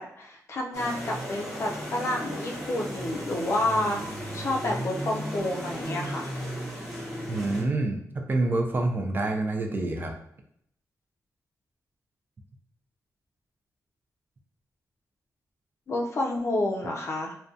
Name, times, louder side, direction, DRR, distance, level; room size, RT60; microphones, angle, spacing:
voice 1, 0.0-4.0 4.3-6.3 15.9-17.4, left 1 dB, 45° left, 0 dB, 0.4 m, -29 dB
sound 1, 0.7-7.6, equal, ahead, 0.8 m, -35 dB
voice 2, 7.3-10.1, right 2 dB, 30° right, 3 dB, 0.3 m, -27 dB
2.6 x 2.2 x 2.4 m, 0.70 s
wide cardioid pair, 130°, 6 cm